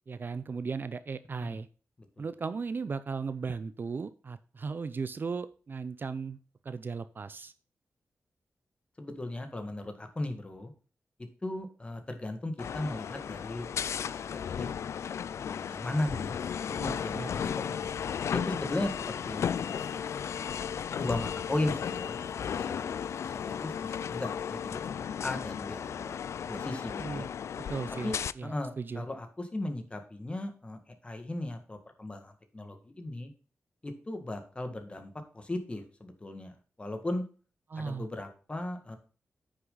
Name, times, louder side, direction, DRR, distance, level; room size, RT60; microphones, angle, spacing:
voice 1, 0.1-1.7 2.2-6.4 6.6-7.5 16.7-17.3 27.0-27.3 27.7-29.1 37.7-38.1, right 5 dB, 45° right, 14 dB, 0.5 m, -36 dB
voice 2, 9.0-10.7 11.4-14.2 14.6-14.7 15.4-18.0 18.3-20.0 21.0-22.2 22.5-22.9 23.2-26.2 26.5-27.3 28.0-33.3 33.8-36.5 36.8-37.2 37.8-39.0, left 1 dB, 25° left, 6 dB, 1.8 m, -37 dB
sound 1, 12.6-28.3, left 8 dB, 75° left, 0.3 m, -35 dB
9.5 x 6.4 x 3.9 m, 0.38 s
wide cardioid pair, 125°, 5 cm